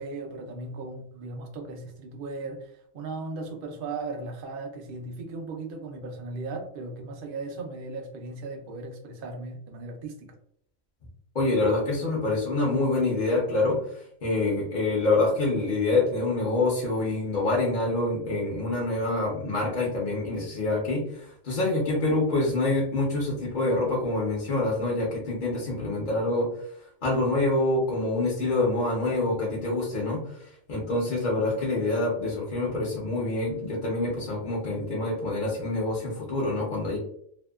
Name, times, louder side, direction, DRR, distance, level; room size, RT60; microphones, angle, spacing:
voice 1, 0.0-10.4, right 3 dB, 60° right, 3 dB, 0.5 m, -37 dB
voice 2, 11.3-13.8 14.2-26.5 27.0-30.2 30.7-37.0, left 2 dB, 45° left, -3 dB, 0.6 m, -26 dB
2.7 x 2.2 x 2.2 m, 0.67 s
omnidirectional pair, 1.4 m